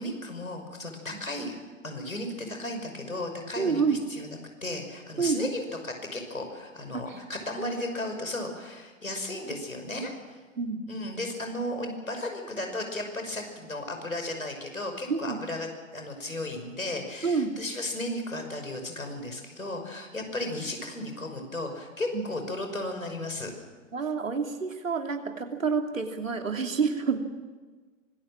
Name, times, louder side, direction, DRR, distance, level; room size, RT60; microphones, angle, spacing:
voice 1, 0.0-1.6 1.8-3.8 4.1-10.4 10.9-15.7 15.9-23.5, left 1 dB, 85° left, 4 dB, 5.7 m, -35 dB
voice 2, 3.6-4.0 5.2-5.4 6.9-7.2 7.6-7.7 10.6-10.8 15.1-15.4 17.2-17.5 22.1-22.2 23.9-27.2, right 5 dB, 75° right, 4 dB, 3.0 m, -28 dB
25.0 x 19.5 x 7.5 m, 1.4 s
figure-of-eight pair, 115°, 40 cm